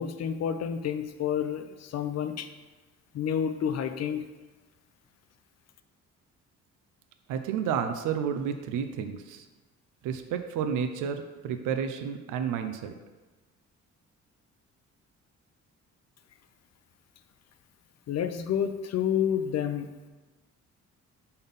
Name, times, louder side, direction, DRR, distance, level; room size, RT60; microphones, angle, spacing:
voice 1, 0.0-2.5 3.1-4.2 18.1-19.9, left 8 dB, 60° left, 9 dB, 0.6 m, -29 dB
voice 2, 7.3-9.5 10.0-12.9, right 7 dB, 85° right, 7 dB, 0.6 m, -31 dB
5.4 x 3.9 x 5.4 m, 1.2 s
cardioid pair, 90°, 30 cm